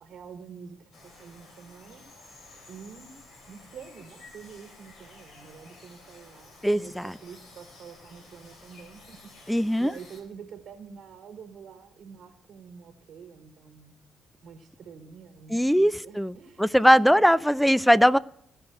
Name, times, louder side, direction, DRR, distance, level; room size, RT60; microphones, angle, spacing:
voice 1, 0.0-2.0 2.7-3.1 3.5-9.2 9.8-13.9 14.4-17.2, right 6 dB, 65° right, 6 dB, 1.1 m, -47 dB
sound 1, 0.9-10.2, left 2 dB, 70° left, 3.1 m, -52 dB
voice 2, 6.6-7.1 9.5-9.9 15.5-18.2, equal, ahead, 18 dB, 0.3 m, -20 dB
16.0 x 5.4 x 4.5 m, 0.71 s
cardioid pair, 90°, 0 cm